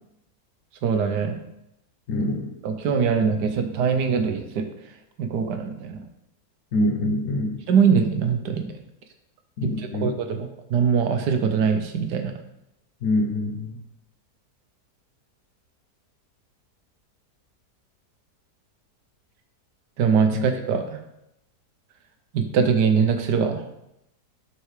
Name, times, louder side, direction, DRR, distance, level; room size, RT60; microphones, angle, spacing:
voice 1, 0.8-1.4 2.6-4.6 5.2-6.0 7.7-8.7 9.6-9.7 10.0-10.4 10.7-12.3 20.0-21.0 22.3-23.6, right 6 dB, 85° right, 6 dB, 1.4 m, -22 dB
voice 2, 2.1-2.5 6.7-7.6 9.6-10.1 13.0-13.7 20.3-20.5, left 1 dB, 60° left, 1 dB, 1.1 m, -25 dB
11.5 x 4.6 x 3.2 m, 0.84 s
omnidirectional pair, 1.8 m